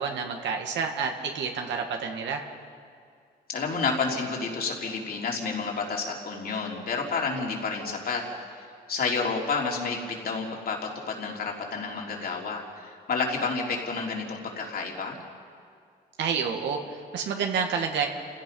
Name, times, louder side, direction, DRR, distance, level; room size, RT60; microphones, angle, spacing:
voice 1, 0.0-2.5 16.2-18.1, right 6 dB, 85° right, 3 dB, 1.9 m, -29 dB
voice 2, 3.5-8.2 8.5-10.8 11.1-15.2, left 4 dB, 55° left, -1 dB, 3.7 m, -30 dB
29.5 x 16.5 x 5.5 m, 2.3 s
cardioid pair, 105°, 18 cm